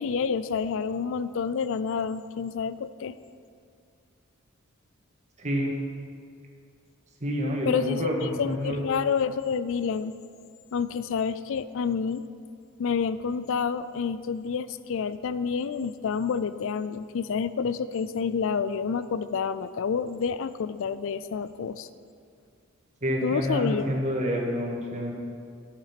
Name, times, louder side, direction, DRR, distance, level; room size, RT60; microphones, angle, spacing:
voice 1, 0.0-3.2 7.7-8.1 8.4-10.1 10.7-12.2 12.8-21.9 23.2-23.9, left 6 dB, 65° left, 14 dB, 0.4 m, -28 dB
voice 2, 5.4-5.8 7.2-8.8 23.0-25.1, equal, 35° right, -1 dB, 1.6 m, -28 dB
11.0 x 6.6 x 5.9 m, 2.3 s
head